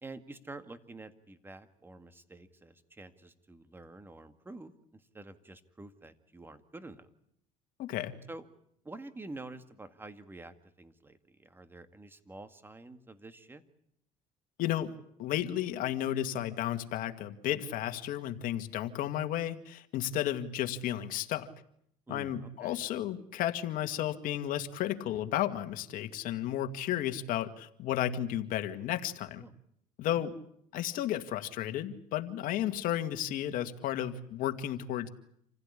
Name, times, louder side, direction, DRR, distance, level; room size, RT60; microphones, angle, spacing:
voice 1, 0.0-7.1 8.3-8.5 8.8-13.6 22.1-22.8 29.4-29.5 30.1-30.2, right 2 dB, 15° right, 10 dB, 2.1 m, -48 dB
voice 2, 7.8-8.2 14.6-21.5 22.1-29.5 30.0-30.3 30.7-35.1, left 12 dB, 65° left, 7 dB, 2.1 m, -33 dB
27.5 x 16.0 x 10.0 m, 0.72 s
cardioid pair, 105°, 15 cm